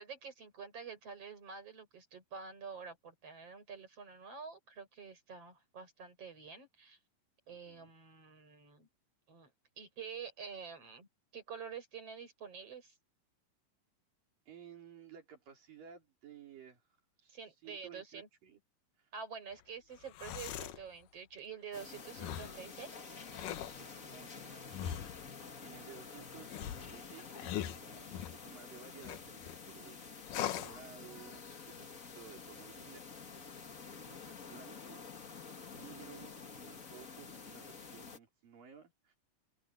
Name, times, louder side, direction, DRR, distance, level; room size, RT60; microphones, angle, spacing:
voice 1, 0.0-7.0 7.5-8.9 9.3-9.5 9.8-11.1 11.3-13.0 17.3-18.3 19.1-23.2, right 6 dB, 45° right, 6.9 m, -48 dB
voice 2, 7.5-7.9 14.5-16.8 17.2-18.6 19.0-19.1 20.6-20.7 23.7-33.1 33.4-35.1 35.5-39.2, right 8 dB, 85° right, 6.0 m, -56 dB
sound 1, 20.0-20.8 22.2-22.6 23.2-23.8 24.7-25.3 26.5-28.4 29.0-29.6 30.3-30.8, left 11 dB, 75° left, 2.6 m, -41 dB
sound 2, 21.7-38.2, left 5 dB, 35° left, 1.4 m, -49 dB
open air
omnidirectional pair, 3.8 m